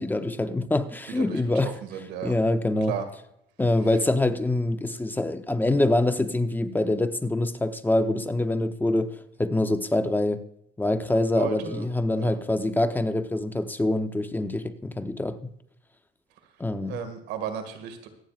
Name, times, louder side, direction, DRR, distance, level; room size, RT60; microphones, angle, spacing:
voice 1, 0.0-1.7 2.2-2.9 3.6-10.4 10.8-15.4 16.6-17.0, left 2 dB, 10° left, 0.8 m, -25 dB
voice 2, 1.1-2.3 2.9-3.1 11.3-11.9 12.2-12.4 16.9-18.1, right 8 dB, 90° right, 2.0 m, -34 dB
24.5 x 9.0 x 2.5 m
cardioid pair, 110°, 17 cm